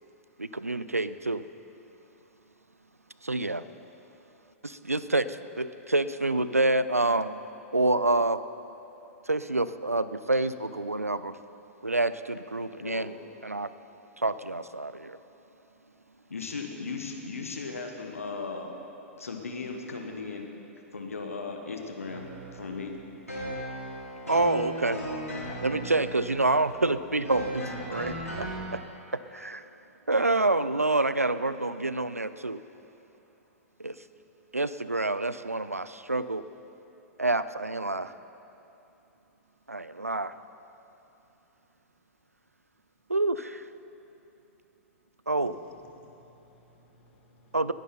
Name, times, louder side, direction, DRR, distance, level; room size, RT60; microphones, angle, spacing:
voice 1, 0.4-1.4 3.2-3.6 4.6-7.4 7.7-8.4 9.3-11.4 11.8-13.1 13.4-13.7 14.2-15.2 24.3-25.0 25.6-28.8 29.1-29.6 30.1-32.6 33.8-34.0 34.5-36.4 37.2-38.1 39.7-40.3 43.1-43.6 45.3-45.5 47.5-47.7, right 2 dB, 90° right, 14 dB, 0.4 m, -27 dB
voice 2, 16.3-18.7 19.2-20.5 20.9-22.2 22.5-22.9, left 4 dB, 75° left, 3 dB, 1.4 m, -36 dB
sound 1, 22.0-28.6, right 1 dB, 90° left, 3.2 m, -37 dB
voice 3, 45.4-47.6, left 2 dB, 50° left, -2 dB, 2.8 m, -57 dB
19.5 x 11.0 x 4.4 m, 2.9 s
figure-of-eight pair, 100°, 8 cm